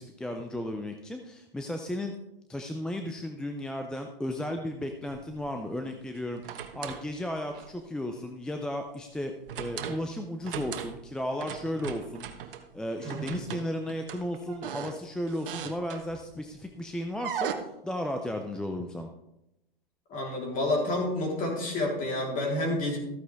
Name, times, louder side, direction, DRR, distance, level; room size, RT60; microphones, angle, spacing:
voice 1, 0.0-2.1 2.5-19.1, left 1 dB, 5° left, 4 dB, 0.4 m, -35 dB
sound 1, 5.1-5.5 6.2-7.1 7.5-7.8 9.5-10.1 10.4-11.1 11.4-12.6 13.0-16.3 17.1-17.5, right 9 dB, 65° right, 1.3 m, -38 dB
voice 2, 13.0-13.4 20.1-23.0, left 1 dB, 25° left, -1 dB, 3.6 m, -29 dB
14.0 x 9.1 x 3.4 m, 0.88 s
hypercardioid pair, 125°, 29 cm